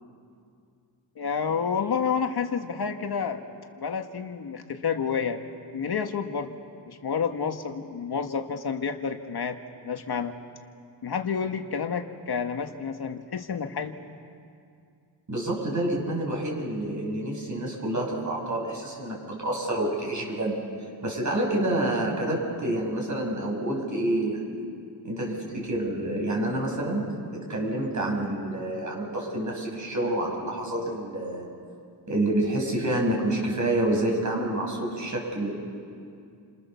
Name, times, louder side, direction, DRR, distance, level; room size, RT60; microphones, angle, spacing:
voice 1, 1.2-3.4 3.8-5.4 5.7-6.5 6.9-9.6 9.8-10.4 11.0-13.9 15.8-16.0, left 6 dB, 60° left, 5 dB, 1.7 m, -29 dB
voice 2, 15.3-20.7 21.0-24.5 25.0-31.5 32.1-35.5, right 1 dB, 40° right, -1 dB, 7.8 m, -28 dB
29.5 x 28.5 x 7.1 m, 2.4 s
cardioid pair, 100°, 44 cm